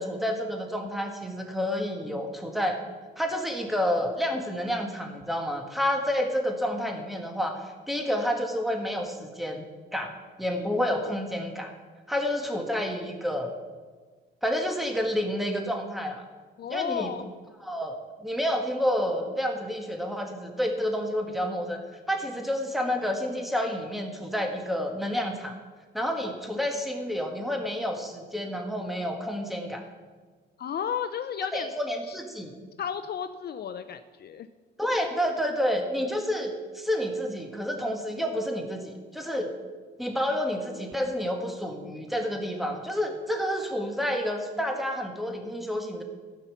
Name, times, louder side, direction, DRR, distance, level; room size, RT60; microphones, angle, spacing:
voice 1, 0.0-2.8 3.2-9.6 9.9-10.1 10.4-11.7 12.1-13.5 14.4-16.2 16.7-17.1 17.6-21.8 22.1-25.5 25.9-29.8 31.5-32.5 34.8-39.5 40.0-46.0, equal, ahead, 3 dB, 1.9 m, -29 dB
voice 2, 16.6-17.3 30.6-31.7 32.1-32.2 32.8-34.5, left 8 dB, 55° left, 11 dB, 0.5 m, -33 dB
13.5 x 5.7 x 7.2 m, 1.4 s
cardioid pair, 90°, 20 cm